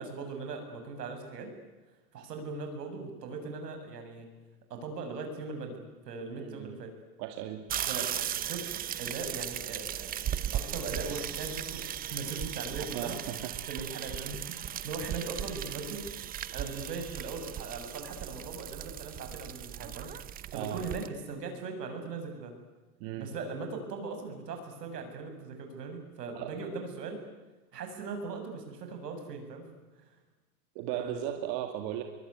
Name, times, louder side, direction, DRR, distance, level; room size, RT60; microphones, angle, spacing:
voice 1, 0.0-1.5 2.1-4.3 4.7-6.9 7.9-8.1 8.3-8.7 9.0-10.2 10.5-13.2 13.7-16.1 16.5-22.5 23.2-27.2 27.7-29.7 30.9-31.3, right 4 dB, 80° right, 5 dB, 7.1 m, -39 dB
voice 2, 6.3-6.7 7.2-7.6 12.7-13.6 20.5-20.8 23.0-23.3 26.3-26.6 30.7-32.0, right 12 dB, 45° right, 5 dB, 2.4 m, -36 dB
sound 1, 7.7-21.1, right 11 dB, 20° right, 0.8 m, -37 dB
23.0 x 23.0 x 9.7 m, 1.1 s
hypercardioid pair, 130°, 48 cm